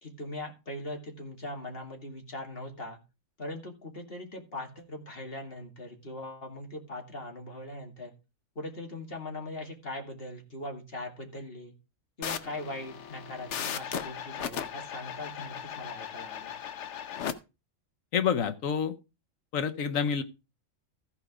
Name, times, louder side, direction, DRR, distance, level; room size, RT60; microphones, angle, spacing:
voice 1, 0.0-3.0 3.4-8.1 8.6-11.7 12.2-16.5, left 1 dB, 45° left, 2 dB, 2.5 m, -40 dB
sound 1, 12.2-17.3, left 8 dB, 65° left, 1.1 m, -37 dB
voice 2, 18.1-18.9 19.5-20.2, left 7 dB, 90° left, 9 dB, 1.4 m, -28 dB
15.0 x 5.1 x 4.8 m, 0.28 s
omnidirectional pair, 1.4 m